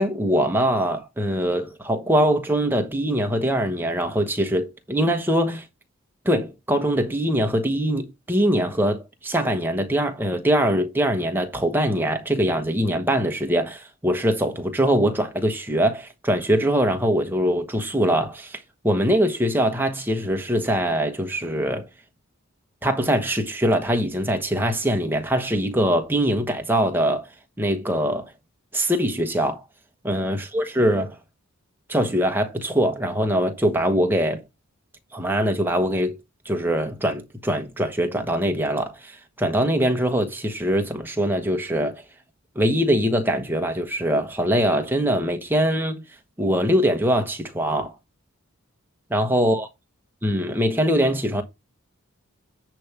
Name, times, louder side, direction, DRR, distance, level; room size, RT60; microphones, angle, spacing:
voice 1, 0.0-5.6 6.2-21.9 22.8-27.3 27.6-28.3 28.7-29.6 30.0-31.2 31.9-34.4 35.1-36.2 36.4-42.0 42.5-46.0 46.4-48.0 49.1-49.7 50.2-51.4, equal, 10° right, 1.2 m, -22 dB
10.0 x 3.4 x 5.9 m
head